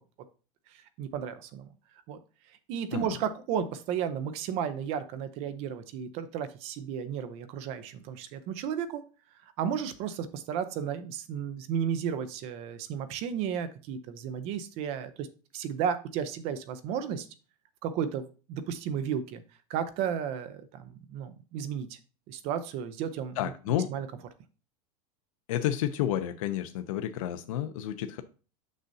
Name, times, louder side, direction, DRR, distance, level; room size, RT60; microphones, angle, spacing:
voice 1, 0.7-1.7 2.1-2.2 2.7-9.0 9.6-15.3 15.5-17.3 17.8-19.4 19.7-22.0 22.3-23.5 23.9-24.1, right 8 dB, 35° right, 12 dB, 0.7 m, -33 dB
voice 2, 23.4-23.9 25.5-28.2, left 11 dB, 75° left, 8 dB, 0.6 m, -30 dB
6.6 x 6.3 x 2.7 m, 0.35 s
supercardioid pair, 170°, 18 cm